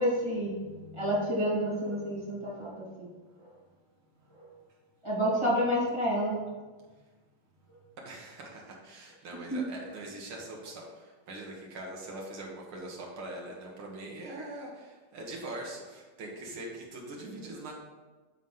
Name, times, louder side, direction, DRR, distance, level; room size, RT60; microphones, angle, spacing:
voice 1, 0.0-3.1 5.0-6.4 9.5-9.6, equal, 15° right, -8 dB, 1.2 m, -29 dB
voice 2, 8.0-17.7, right 1 dB, 55° right, -2 dB, 1.6 m, -42 dB
9.3 x 4.1 x 5.5 m, 1.3 s
omnidirectional pair, 4.1 m